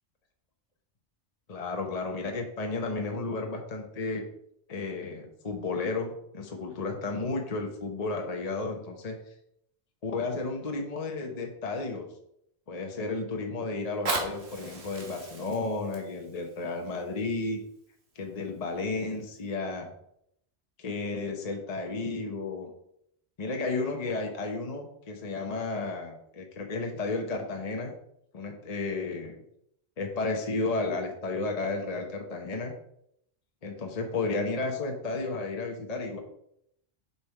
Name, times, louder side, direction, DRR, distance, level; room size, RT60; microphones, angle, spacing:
voice 1, 1.5-4.2 4.7-9.2 10.0-12.1 12.7-17.6 18.1-19.9 20.8-22.7 23.4-27.9 28.3-29.4 30.0-32.7 33.6-36.2, left 3 dB, 35° left, 3 dB, 1.0 m, -33 dB
Fire, 13.8-18.8 19.4-19.5, right 2 dB, 65° right, 1.8 m, -38 dB
6.8 x 5.7 x 4.6 m, 0.74 s
omnidirectional pair, 1.2 m